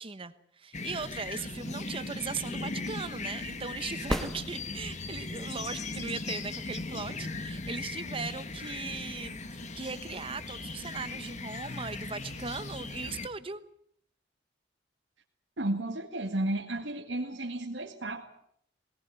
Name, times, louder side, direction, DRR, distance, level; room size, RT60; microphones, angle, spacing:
voice 1, 0.0-13.6, right 4 dB, 30° right, 12 dB, 1.0 m, -39 dB
sound 1, 0.7-13.3, left 3 dB, 40° left, 1.5 m, -38 dB
sound 2, 4.1-5.2 9.1-9.2, equal, ahead, 1.5 m, -34 dB
voice 2, 15.6-18.2, right 1 dB, 75° right, 1 dB, 2.1 m, -33 dB
21.5 x 18.0 x 9.2 m, 0.68 s
head